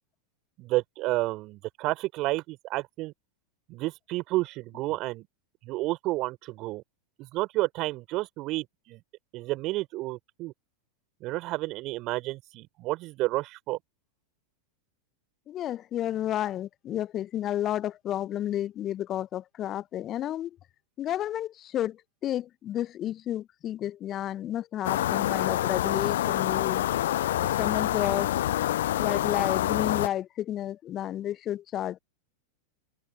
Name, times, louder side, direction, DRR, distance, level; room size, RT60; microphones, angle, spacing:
voice 1, 0.6-3.1 3.7-5.3 5.6-6.8 7.2-9.0 9.3-10.5 11.2-13.8, right 19 dB, 45° right, 4.1 m, -31 dB
voice 2, 15.5-20.6 21.0-26.8 27.4-28.3 29.0-32.0, left 12 dB, 35° left, 1.0 m, -31 dB
sound 1, 24.8-30.1, left 13 dB, 65° left, 0.3 m, -27 dB
figure-of-eight pair, 90°, 0 cm